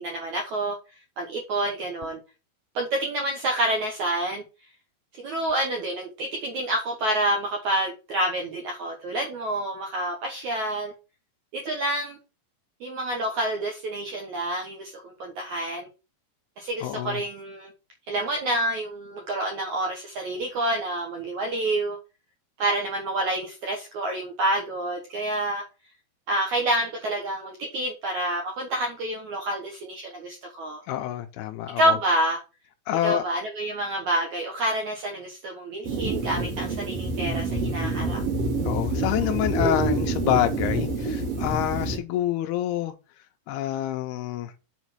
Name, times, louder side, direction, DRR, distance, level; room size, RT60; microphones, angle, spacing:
voice 1, 0.0-0.8 1.2-2.2 2.7-4.4 5.2-10.9 11.5-12.2 12.8-15.9 16.6-17.7 18.1-22.0 22.6-25.6 26.3-30.8 31.8-32.4 33.0-38.2, right 1 dB, 80° right, 1.7 m, -28 dB
voice 2, 16.8-17.2 30.9-32.0 32.9-33.2 38.6-42.9 43.5-44.5, left 12 dB, 85° left, 2.3 m, -27 dB
sound 1, 35.8-42.0, right 2 dB, 45° right, 2.6 m, -27 dB
7.4 x 4.1 x 6.1 m
omnidirectional pair, 5.3 m